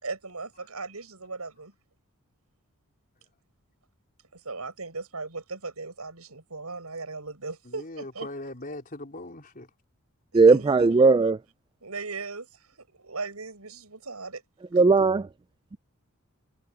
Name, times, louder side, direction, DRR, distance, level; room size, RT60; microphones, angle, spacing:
voice 1, 0.0-1.7 4.3-8.3 10.3-10.9 11.8-12.6 13.0-14.4, right 3 dB, 90° right, 6.2 m, -37 dB
voice 2, 7.7-9.7, left 2 dB, 40° left, 4.1 m, -39 dB
voice 3, 10.3-11.4 14.7-15.3, right 4 dB, 20° right, 0.3 m, -18 dB
head